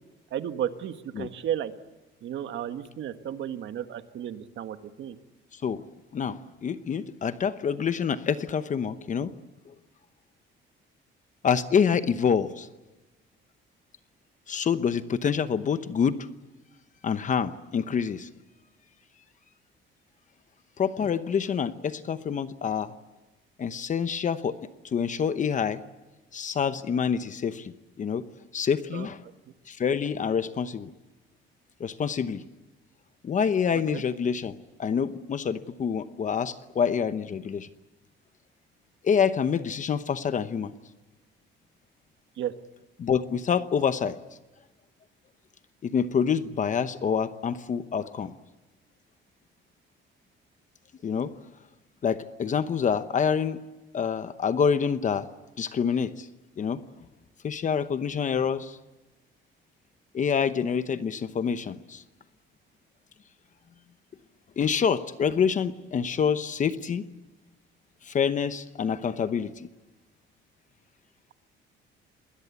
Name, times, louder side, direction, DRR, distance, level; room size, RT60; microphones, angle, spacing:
voice 1, 0.3-1.7 2.2-5.2 28.9-29.1 33.9-34.0 42.4-42.5, right 10 dB, 65° right, 9 dB, 1.6 m, -33 dB
voice 2, 6.1-9.3 11.4-12.7 14.5-16.1 17.0-18.3 20.8-22.9 23.6-24.6 24.9-25.8 26.3-27.7 28.0-28.3 28.5-29.2 29.7-30.9 31.8-32.4 33.2-34.5 34.8-37.7 39.0-40.7 43.0-44.2 45.8-48.3 51.0-51.3 52.0-53.6 53.9-55.3 55.6-56.3 56.6-56.8 57.4-58.8 60.1-62.0 64.6-67.0 68.0-69.7, left 7 dB, 40° left, 11 dB, 0.9 m, -27 dB
27.5 x 20.5 x 8.4 m, 1.1 s
cardioid pair, 140°, 20 cm